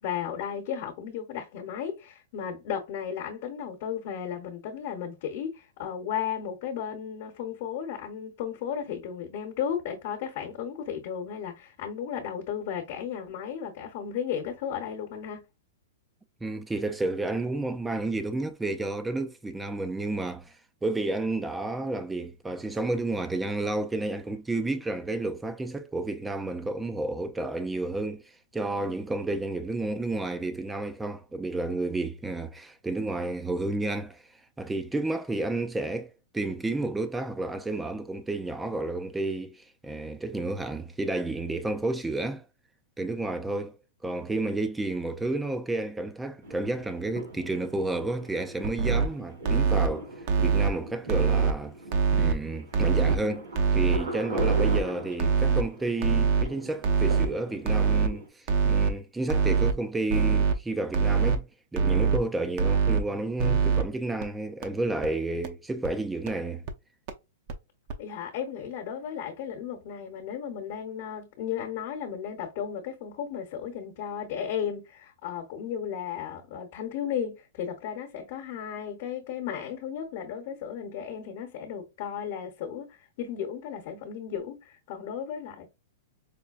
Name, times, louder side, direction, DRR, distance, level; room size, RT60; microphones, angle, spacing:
voice 1, 0.0-15.4 68.0-85.7, left 8 dB, 50° left, 1.0 m, -34 dB
voice 2, 16.4-20.5 20.8-28.2 28.5-34.2 34.6-42.4 43.0-43.8 44.0-50.1 50.4-51.8 52.1-66.6, right 2 dB, 5° right, 0.4 m, -31 dB
sound 1, 46.4-58.3, right 2 dB, 85° right, 2.3 m, -40 dB
sound 2, 48.6-49.1 49.4-49.9 50.3-50.7 51.1-51.5 51.9-52.3 52.7-53.2 53.5-54.0 54.4-54.8 55.2-55.6 56.0-56.4 56.8-57.3 57.7-58.1 58.5-58.9 59.3-59.7 60.1-60.5 60.9-61.4 61.8-62.2 62.6-63.0 63.4-63.8 64.2-64.3 64.6-64.7 65.0-65.1 65.4-65.5 65.8-65.9 66.3-66.4 66.7-66.8 67.1-67.2 67.5-67.6 67.9-68.0, right 5 dB, 50° right, 0.7 m, -23 dB
5.0 x 2.2 x 2.4 m
hypercardioid pair, 140°, 0 cm